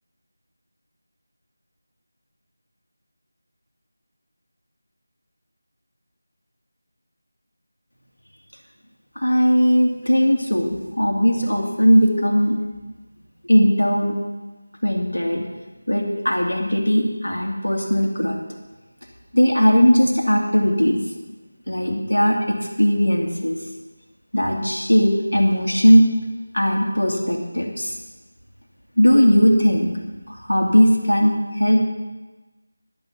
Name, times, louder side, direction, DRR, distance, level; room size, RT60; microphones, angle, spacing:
voice 1, 9.2-12.6 13.5-14.2 14.8-15.5 15.9-18.4 19.3-21.0 21.7-23.6 24.3-26.1 26.5-28.0 29.0-30.0 30.3-31.8, equal, 85° left, 1 dB, 2.7 m, -18 dB
11.5 x 11.5 x 5.9 m, 1.2 s
figure-of-eight pair, 170°, 0 cm